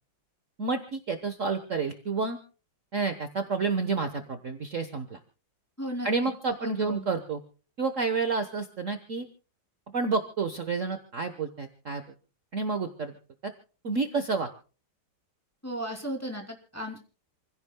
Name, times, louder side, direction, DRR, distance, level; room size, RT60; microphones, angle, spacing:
voice 1, 0.6-2.4 2.9-5.2 6.0-7.4 7.8-9.3 9.9-12.0 12.5-13.1 13.4-13.5 13.8-14.5, right 4 dB, 45° right, 7 dB, 1.4 m, -29 dB
voice 2, 5.8-6.3 6.6-7.1 15.6-17.0, equal, 5° left, 2 dB, 2.7 m, -36 dB
28.0 x 16.0 x 2.3 m, 0.37 s
omnidirectional pair, 2.1 m